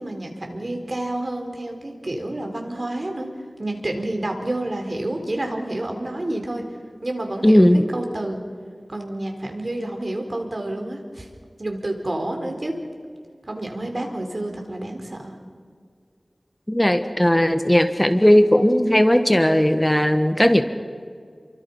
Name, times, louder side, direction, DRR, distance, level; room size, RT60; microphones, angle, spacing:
voice 1, 0.0-3.3 3.6-6.6 7.0-8.4 8.9-11.3 11.6-12.8 13.5-15.4, right 1 dB, 50° right, 3 dB, 4.1 m, -29 dB
voice 2, 7.4-7.9 16.7-20.6, equal, 15° left, 8 dB, 1.3 m, -17 dB
29.5 x 24.0 x 5.6 m, 2.1 s
wide cardioid pair, 60°, 0 cm